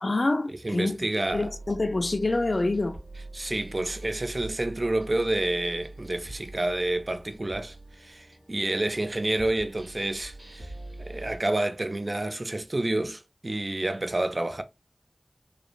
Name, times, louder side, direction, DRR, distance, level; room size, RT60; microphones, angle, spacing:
voice 1, 0.0-1.1 1.3-3.0, left 2 dB, 65° left, 0.3 m, -26 dB
voice 2, 0.6-1.5 3.3-10.7 11.0-14.6, right 2 dB, 50° right, 0.3 m, -29 dB
sound 1, 1.3-11.4, right 2 dB, 75° right, 1.4 m, -44 dB
3.1 x 2.0 x 2.3 m
wide cardioid pair, 55°, 0 cm